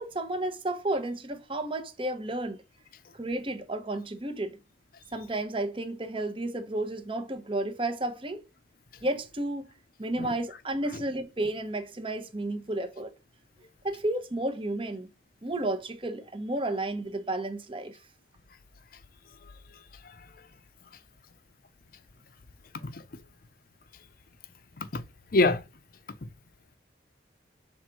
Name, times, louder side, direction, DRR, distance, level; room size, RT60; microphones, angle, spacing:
voice 1, 0.0-2.6 3.1-4.6 5.1-8.4 9.0-9.7 10.0-13.1 13.8-15.1 15.4-18.0, right 1 dB, 30° right, 0.9 m, -32 dB
voice 2, 20.0-20.5 22.8-23.0 24.8-25.0 25.3-25.6 26.2-26.3, left 2 dB, 50° left, 0.7 m, -27 dB
6.4 x 3.5 x 4.6 m
head